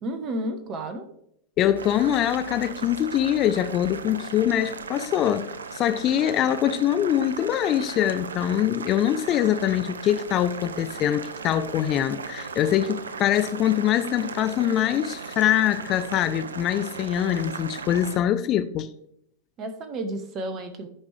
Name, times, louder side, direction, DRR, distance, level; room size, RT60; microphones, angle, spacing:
voice 1, 0.0-1.1 19.6-20.9, right 1 dB, 35° right, 1.1 m, -31 dB
voice 2, 1.6-18.9, left 11 dB, 35° left, 0.5 m, -23 dB
Boiling, 1.8-18.2, right 5 dB, 70° right, 0.5 m, -37 dB
12.5 x 5.3 x 3.3 m
figure-of-eight pair, 90°, 0 cm